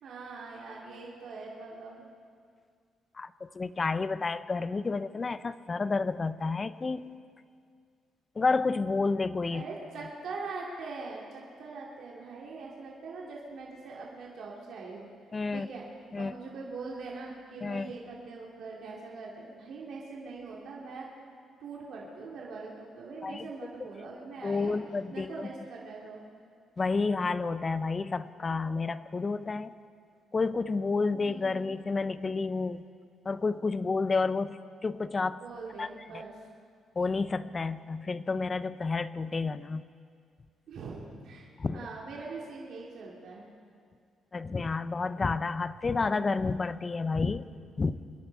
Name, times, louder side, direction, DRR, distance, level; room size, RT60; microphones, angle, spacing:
voice 1, 0.0-2.1 9.5-15.1 15.5-15.9 16.2-21.1 21.6-24.8 25.1-26.2 31.1-31.7 35.4-36.3 40.7-43.5, right 4 dB, 70° right, -4 dB, 2.6 m, -42 dB
voice 2, 3.1-7.2 8.4-9.6 15.3-15.7 16.1-16.3 17.6-17.9 23.2-23.5 24.4-25.5 26.8-29.7 30.3-32.8 33.2-35.4 35.8-35.9 36.1-36.2 37.0-39.8 41.6-41.9 44.3-47.5 47.8-48.0, left 4 dB, 30° left, 14 dB, 0.6 m, -30 dB
26.5 x 10.5 x 4.6 m, 2.2 s
cardioid pair, 90°, 0 cm